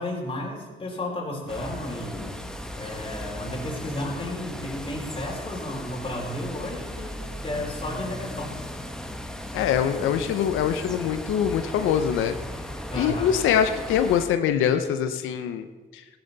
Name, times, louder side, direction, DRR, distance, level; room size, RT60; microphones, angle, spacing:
voice 1, 0.0-2.4 2.8-8.6 9.9-10.2 12.9-13.3, left 1 dB, 25° left, -2 dB, 3.6 m, -33 dB
sound 1, 1.5-14.3, equal, 5° left, 1.2 m, -36 dB
voice 2, 9.5-12.4 12.9-15.7 15.9-16.0, left 9 dB, 90° left, 8 dB, 0.8 m, -23 dB
15.5 x 10.5 x 4.1 m, 1.3 s
cardioid pair, 90°, 20 cm